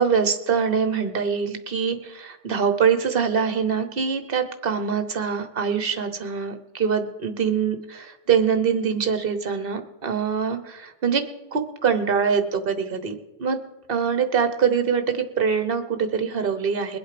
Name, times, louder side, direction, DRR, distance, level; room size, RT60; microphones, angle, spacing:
voice 1, 0.0-11.2 11.5-13.6 13.9-17.0, right 6 dB, 55° right, 8 dB, 1.2 m, -24 dB
22.0 x 7.9 x 5.1 m, 1.0 s
omnidirectional pair, 1.2 m